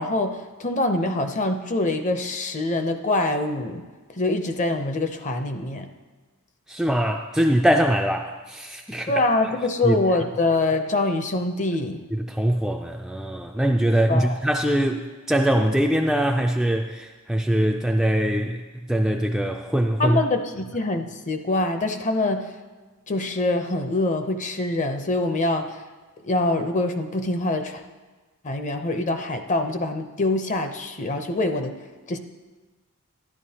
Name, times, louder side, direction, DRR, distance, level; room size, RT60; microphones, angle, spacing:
voice 1, 0.0-3.8 4.1-5.9 9.1-12.0 14.1-14.4 20.0-22.5 23.1-25.8 26.2-27.8 28.4-31.8 32.1-32.2, left 2 dB, 35° left, 7 dB, 0.6 m, -24 dB
voice 2, 6.7-9.2 9.8-10.0 12.1-18.6 18.9-20.2, right 1 dB, ahead, 2 dB, 0.3 m, -22 dB
13.0 x 11.0 x 2.8 m, 1.3 s
head